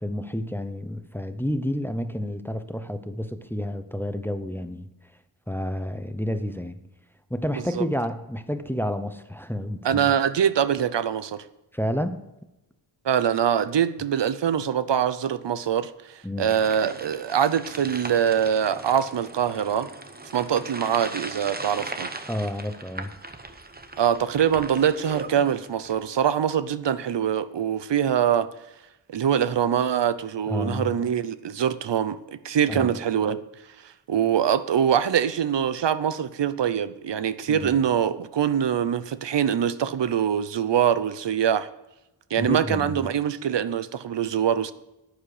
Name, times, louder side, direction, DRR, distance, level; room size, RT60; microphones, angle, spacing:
voice 1, 0.0-4.9 5.5-6.8 7.3-10.1 11.7-12.2 16.2-16.5 22.3-23.1 30.5-30.9 32.7-32.9 37.5-37.7 42.4-43.1, left 1 dB, 5° left, 10 dB, 0.7 m, -30 dB
voice 2, 9.8-11.4 13.0-19.9 20.3-22.1 24.0-28.5 29.1-33.4 34.1-41.7 42.3-44.7, right 8 dB, 75° right, 14 dB, 0.7 m, -24 dB
sound 1, 16.5-26.1, right 2 dB, 20° right, 0.9 m, -39 dB
10.5 x 10.0 x 4.9 m, 0.94 s
wide cardioid pair, 115°, 43 cm